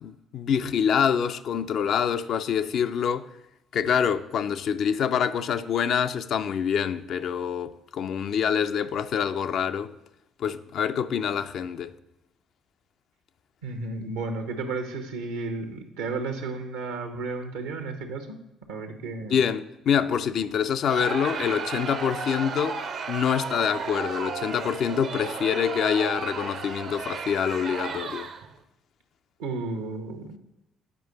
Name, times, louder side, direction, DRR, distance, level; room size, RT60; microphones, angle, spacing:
voice 1, 0.0-3.3 3.7-9.9 10.4-11.9 19.3-22.8 23.1-28.3, left 8 dB, 55° left, 0.4 m, -26 dB
voice 2, 13.6-18.4 18.7-19.4 29.4-30.4, right 3 dB, 75° right, 0.9 m, -33 dB
Crowd, 20.8-28.6, right 5 dB, 55° right, 0.6 m, -34 dB
9.0 x 4.7 x 4.0 m
figure-of-eight pair, 50°, 0 cm